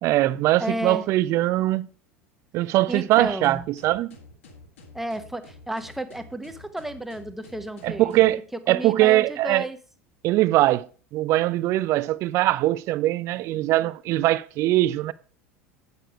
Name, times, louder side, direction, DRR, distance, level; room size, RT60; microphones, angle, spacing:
voice 1, 0.0-1.9 2.5-4.1 7.8-8.4 8.7-9.7 10.2-10.9 11.1-15.1, right 16 dB, 40° right, 0.5 m, -21 dB
voice 2, 0.6-1.0 2.9-3.6 4.9-8.1 8.5-9.8, right 1 dB, 5° right, 1.0 m, -32 dB
sound 1, 3.1-8.4, left 2 dB, 65° left, 1.8 m, -49 dB
8.9 x 6.7 x 4.7 m
figure-of-eight pair, 75°, 7 cm